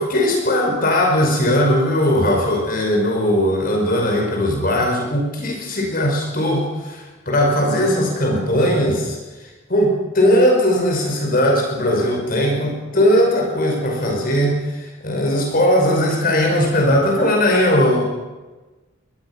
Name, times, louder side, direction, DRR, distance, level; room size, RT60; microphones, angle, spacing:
voice 1, 0.0-9.2 9.7-18.0, equal, 45° left, 0 dB, 5.6 m, -18 dB
24.0 x 20.5 x 6.1 m, 1.2 s
head